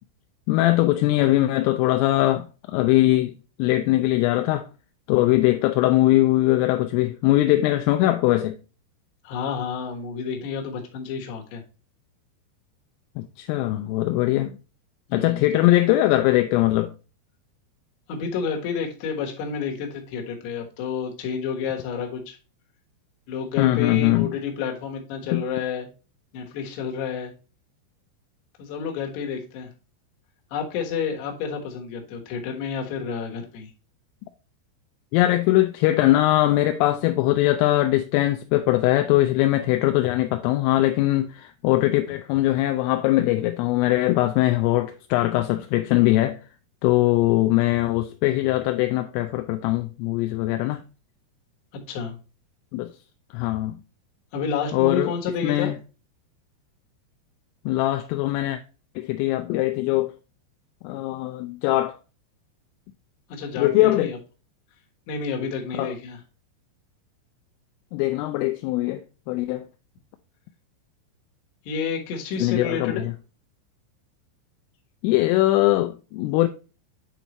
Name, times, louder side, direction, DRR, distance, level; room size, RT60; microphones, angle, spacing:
voice 1, 0.5-4.7 5.1-8.6 13.2-14.6 15.1-16.9 23.6-24.3 25.3-25.4 35.1-46.4 46.8-50.8 52.7-52.9 53.3-53.8 54.7-55.1 55.4-55.8 57.7-58.6 59.0-60.1 60.8-62.0 63.6-64.1 65.8-65.9 67.9-69.7 72.4-73.1 75.0-76.5, left 16 dB, 85° left, 3.1 m, -21 dB
voice 2, 9.2-11.6 15.1-15.6 18.1-22.4 23.3-25.9 26.3-27.3 28.6-29.7 30.5-33.7 51.7-52.2 54.3-55.7 63.3-64.2 65.1-66.2 71.7-73.0, left 6 dB, 65° left, 3.1 m, -30 dB
9.1 x 4.2 x 3.0 m
omnidirectional pair, 5.9 m